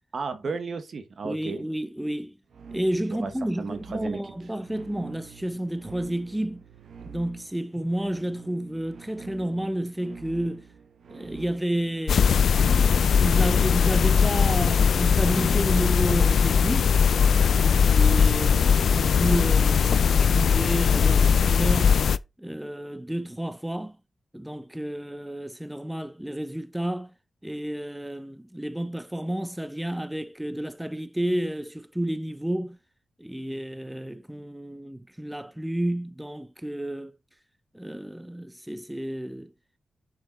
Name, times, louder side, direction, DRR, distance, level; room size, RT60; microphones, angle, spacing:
voice 1, 0.1-1.6 3.2-3.3 3.6-4.2, right 4 dB, 55° right, 1.1 m, -33 dB
voice 2, 1.2-2.4 2.7-6.6 7.0-10.7 11.1-12.3 12.6-17.0 17.5-22.0 22.4-24.0 24.3-27.1 27.4-32.8 33.2-37.2 37.7-39.5, right 1 dB, 5° right, 0.4 m, -31 dB
sound 1, 2.5-17.3, right 6 dB, 70° right, 0.9 m, -46 dB
sound 2, 12.1-22.2, left 6 dB, 75° left, 0.3 m, -20 dB
6.7 x 5.2 x 4.1 m
cardioid pair, 90°, 0 cm